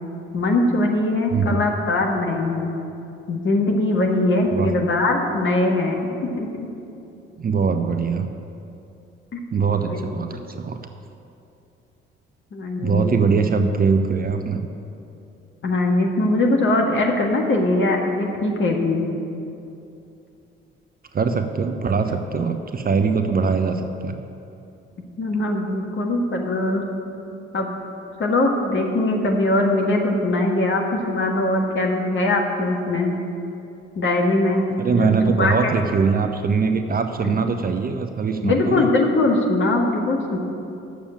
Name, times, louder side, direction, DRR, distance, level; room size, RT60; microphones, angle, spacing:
voice 1, 0.3-2.7 3.3-6.0 6.4-6.7 9.3-9.4 9.9-10.0 12.5-13.2 15.6-19.0 25.2-26.8 27.5-27.7 28.2-33.2 33.9-35.1 35.4-35.5 38.4-40.4, left 2 dB, 40° left, 1 dB, 1.7 m, -21 dB
voice 2, 1.3-1.7 4.5-4.7 7.4-8.3 9.5-10.8 12.8-14.7 21.1-24.2 34.8-38.9, right 5 dB, 30° right, 7 dB, 0.7 m, -22 dB
8.8 x 7.1 x 8.6 m, 2.7 s
figure-of-eight pair, 40°, 29 cm